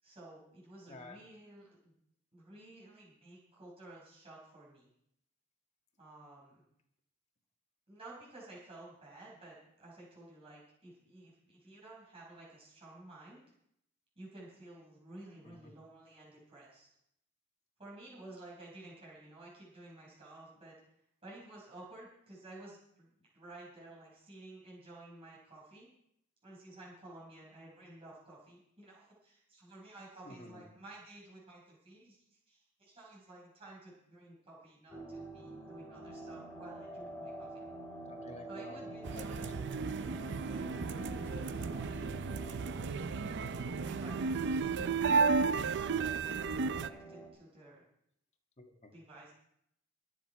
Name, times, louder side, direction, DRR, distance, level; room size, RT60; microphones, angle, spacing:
voice 1, 0.0-2.0 2.3-4.9 6.0-6.6 7.9-13.5 14.2-16.9 17.8-20.8 21.2-25.9 26.4-37.6 38.5-42.1 43.3-45.0 46.7-47.8 48.9-49.3, right 2 dB, 30° right, -5 dB, 6.0 m, -53 dB
voice 2, 0.9-1.2 15.4-15.6 30.3-30.7 38.1-38.8 39.1-39.3 39.7-39.9 44.6-44.7 48.6-48.9, left 2 dB, 30° left, 3 dB, 1.9 m, -51 dB
sound 1, 34.9-47.3, right 2 dB, 10° left, 3.1 m, -47 dB
sound 2, 39.0-46.9, right 4 dB, 55° right, 0.5 m, -33 dB
22.5 x 8.0 x 4.8 m, 0.74 s
head